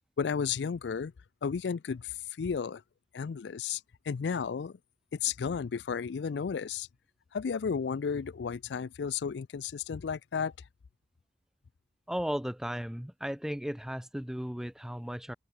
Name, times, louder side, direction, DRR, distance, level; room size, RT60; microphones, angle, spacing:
voice 1, 0.2-1.1 1.4-2.8 3.1-3.8 4.1-4.8 5.1-6.9 7.3-10.5, left 6 dB, 85° left, 0.4 m, -33 dB
voice 2, 12.1-15.3, equal, 5° right, 0.4 m, -35 dB
head